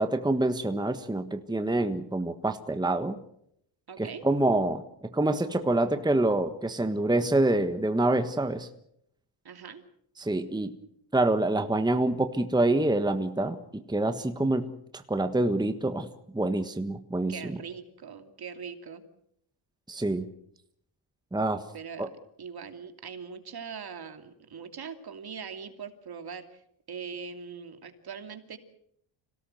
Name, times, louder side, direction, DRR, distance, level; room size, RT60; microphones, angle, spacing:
voice 1, 0.0-3.2 4.0-8.7 10.2-10.7 11.1-16.1 16.3-17.6 19.9-20.3 21.3-21.6 22.0-22.1, right 2 dB, 10° right, 8 dB, 1.4 m, -26 dB
voice 2, 3.9-4.2 9.4-9.8 17.3-19.0 21.7-22.1 22.4-26.4 26.9-28.6, right 6 dB, 50° right, 7 dB, 2.8 m, -41 dB
26.0 x 18.0 x 7.7 m, 0.74 s
cardioid pair, 95°, 49 cm